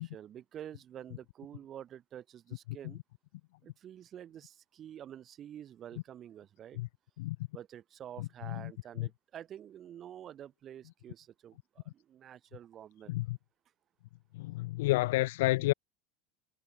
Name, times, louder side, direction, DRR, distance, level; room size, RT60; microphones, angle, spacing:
voice 1, 0.0-3.0 3.6-6.8 7.5-13.1, right 10 dB, 35° right, 1.4 m, -48 dB
voice 2, 8.2-8.7 9.0-9.1 13.1-13.4 14.3-15.7, left 19 dB, 60° left, 0.5 m, -30 dB
figure-of-eight pair, 70°, 0 cm